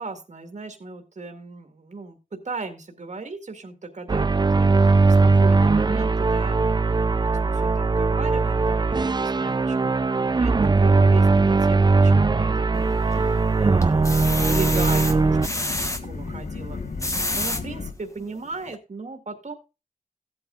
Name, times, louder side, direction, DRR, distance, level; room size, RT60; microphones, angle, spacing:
voice 1, 0.0-2.2 2.4-10.5 10.8-16.8 17.1-19.6, right 3 dB, 50° right, 4 dB, 1.9 m, -37 dB
sound 1, 4.1-15.5, right 3 dB, 30° right, 0.5 m, -19 dB
sound 2, 12.7-13.3 13.8-16.0 16.8-17.6 18.2-18.3 18.7-18.8, left 1 dB, 20° left, 1.2 m, -29 dB
sound 3, 13.6-17.9, left 4 dB, 60° left, 1.1 m, -35 dB
16.0 x 8.6 x 2.5 m, 0.28 s
wide cardioid pair, 110°, 15 cm